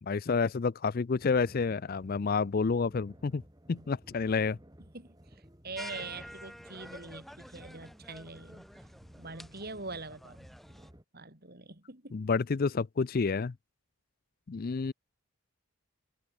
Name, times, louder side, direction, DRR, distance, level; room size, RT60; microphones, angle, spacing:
voice 1, 0.0-3.4 3.7-4.6 12.1-13.5 14.5-14.9, left 4 dB, 40° left, 0.4 m, -29 dB
sound 1, 1.1-11.0, equal, 15° right, 2.3 m, -56 dB
voice 2, 4.9-8.7 9.2-10.5 11.1-12.2, right 3 dB, 45° right, 3.5 m, -44 dB
sound 2, 5.8-10.9, equal, ahead, 1.0 m, -49 dB
head